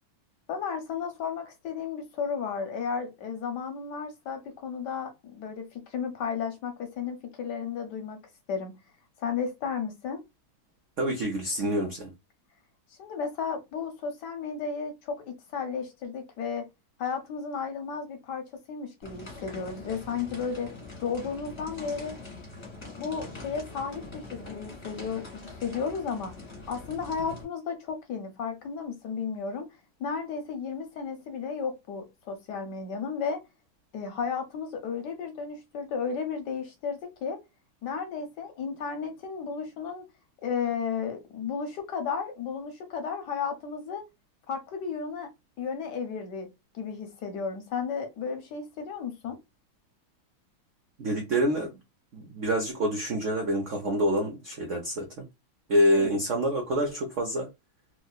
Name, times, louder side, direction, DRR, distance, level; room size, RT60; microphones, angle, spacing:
voice 1, 0.5-8.2 8.5-8.7 9.2-10.2 13.0-16.7 17.0-20.7 21.0-22.1 23.0-26.3 26.7-29.7 30.0-33.4 33.9-37.4 37.8-40.0 40.4-44.0 44.5-45.3 45.6-46.5 46.7-49.4 55.9-56.1, left 6 dB, 65° left, 1.1 m, -33 dB
voice 2, 11.0-12.1 51.0-51.8 52.1-55.1 55.7-57.5, equal, 70° right, 0.7 m, -26 dB
sound 1, 19.0-27.4, left 2 dB, 15° left, 1.4 m, -43 dB
3.0 x 3.0 x 2.3 m
omnidirectional pair, 2.2 m